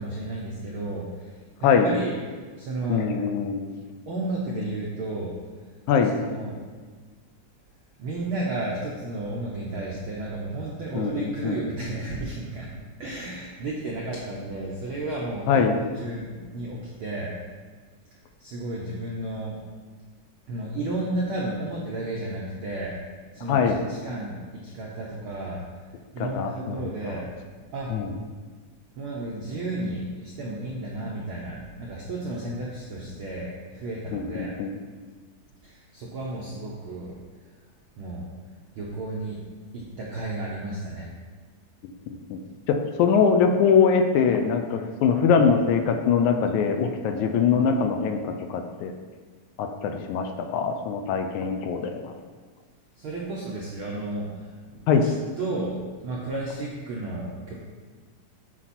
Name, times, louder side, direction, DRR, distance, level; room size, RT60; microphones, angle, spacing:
voice 1, 0.0-1.3 1.6-2.2 2.6-3.1 4.1-5.3 6.2-6.6 8.0-12.7 13.0-17.3 18.4-19.5 20.5-22.9 23.3-24.3 24.6-25.6 26.1-27.2 27.7-27.9 29.0-34.5 35.6-37.2 38.0-38.3 38.8-39.4 39.7-41.1 53.0-54.3 54.7-57.5, right 2 dB, 75° right, -4 dB, 1.2 m, -32 dB
voice 2, 2.9-3.8 5.9-6.2 11.0-11.6 15.5-15.8 23.5-23.8 26.4-27.1 27.9-28.1 34.1-34.7 42.1-42.4 42.7-48.9 49.6-52.0 54.9-55.1, left 6 dB, 80° left, 5 dB, 1.9 m, -23 dB
9.7 x 4.6 x 4.3 m, 1.5 s
omnidirectional pair, 3.6 m